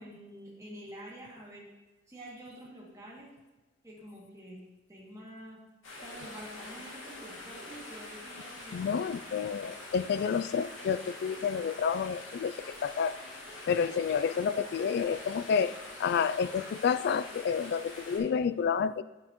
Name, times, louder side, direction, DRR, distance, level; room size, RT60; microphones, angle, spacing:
voice 1, 0.0-1.7 2.1-3.3 3.8-4.6 4.9-5.6 6.0-9.1, right 1 dB, 15° right, -6 dB, 2.3 m, -47 dB
sound 1, 5.8-18.2, left 2 dB, 85° left, 2.3 m, -45 dB
voice 2, 8.7-12.5 12.8-13.2 13.7-15.7 16.0-19.0, left 6 dB, 55° left, 15 dB, 0.3 m, -29 dB
9.5 x 7.5 x 3.0 m, 1.1 s
head